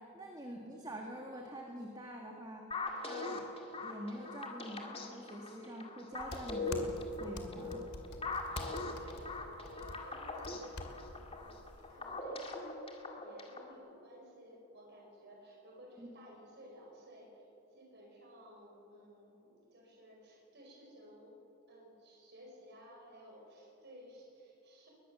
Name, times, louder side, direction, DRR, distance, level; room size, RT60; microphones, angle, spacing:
voice 1, 0.0-2.6 3.0-3.5 3.8-7.8 16.0-16.1, right 1 dB, 15° right, 1 dB, 1.9 m, -46 dB
sound 1, 2.7-13.7, left 2 dB, 25° left, 2.3 m, -41 dB
sound 2, 6.1-12.2, left 1 dB, 85° left, 2.3 m, -48 dB
voice 2, 8.7-12.8 13.1-17.5 17.7-21.4 21.7-24.9, equal, 50° right, -1 dB, 5.1 m, -56 dB
22.5 x 21.0 x 7.1 m, 2.9 s
head